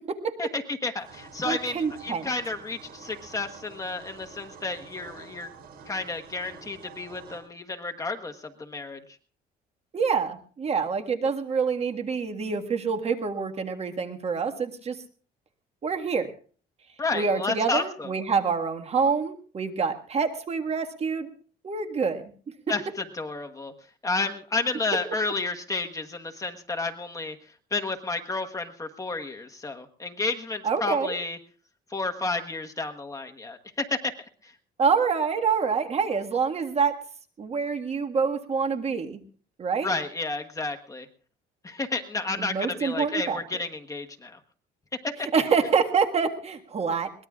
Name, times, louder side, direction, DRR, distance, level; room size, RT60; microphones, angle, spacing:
voice 1, 0.4-5.5 5.9-9.0 17.0-18.1 22.7-23.7 24.0-27.4 27.7-31.4 31.9-34.1 34.4-34.5 39.8-41.1 41.6-44.4 45.0-45.3, left 3 dB, 20° left, 5 dB, 1.3 m, -31 dB
sound 1, 1.0-7.4, right 5 dB, 65° right, 5.7 m, -48 dB
voice 2, 1.4-2.3 9.9-15.0 15.8-16.3 17.1-21.3 21.6-22.3 30.6-31.1 34.8-37.0 37.4-39.2 39.6-39.9 42.4-43.4 45.3-47.1, right 5 dB, 40° right, 5 dB, 1.7 m, -26 dB
22.5 x 19.5 x 2.4 m, 0.42 s
cardioid pair, 110°, 17 cm